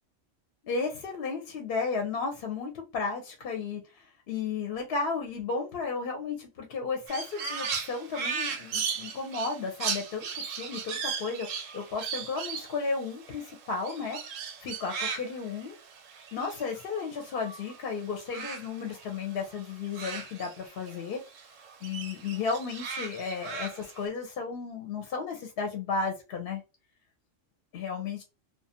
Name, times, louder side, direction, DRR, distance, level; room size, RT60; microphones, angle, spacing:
voice 1, 0.6-14.2 14.6-15.8 16.3-21.2 21.8-26.6 27.7-28.2, left 4 dB, 60° left, 0.7 m, -34 dB
Crow, 7.1-17.8 18.0-21.0 21.3-24.0, right 6 dB, 90° right, 1.0 m, -37 dB
2.4 x 2.1 x 2.7 m
omnidirectional pair, 1.3 m